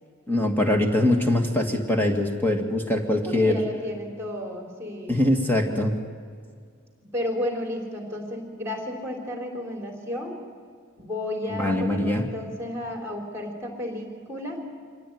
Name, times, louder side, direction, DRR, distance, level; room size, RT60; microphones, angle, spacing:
voice 1, 0.3-3.6 5.1-5.9 11.5-12.3, left 1 dB, 10° left, 3 dB, 1.9 m, -23 dB
voice 2, 3.3-5.2 7.1-10.4 11.0-14.6, left 1 dB, 10° right, 2 dB, 3.7 m, -32 dB
24.5 x 17.0 x 9.4 m, 2.1 s
head